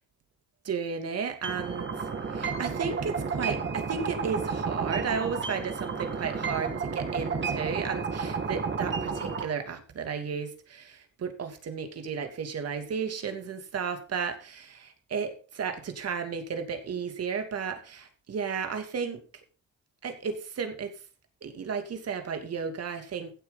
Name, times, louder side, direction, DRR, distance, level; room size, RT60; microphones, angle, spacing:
voice 1, 0.6-1.9 2.3-19.2 20.0-20.9 21.4-23.3, right 6 dB, 55° right, 7 dB, 2.7 m, -33 dB
sound 1, 1.4-9.4, right 5 dB, 40° right, 2.4 m, -32 dB
15.5 x 7.7 x 4.1 m, 0.35 s
cardioid pair, 90°, 30 cm